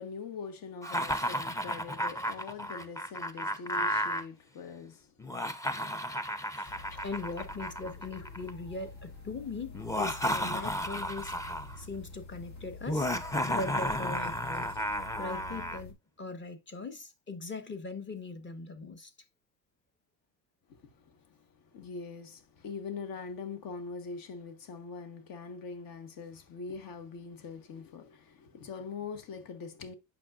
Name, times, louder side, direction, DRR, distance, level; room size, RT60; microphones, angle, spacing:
voice 1, 0.0-5.1 6.9-7.0 20.7-29.9, left 5 dB, 60° left, 1.3 m, -43 dB
Laughter, 0.8-4.2 5.2-8.5 9.7-11.8 12.9-15.8, equal, 10° left, 0.6 m, -33 dB
sound 1, 6.7-15.9, left 3 dB, 75° left, 2.4 m, -48 dB
voice 2, 7.0-11.3 11.8-13.1 13.5-14.7 15.2-19.1, left 3 dB, 30° left, 1.2 m, -40 dB
8.4 x 6.0 x 2.4 m
cardioid pair, 120°, 40 cm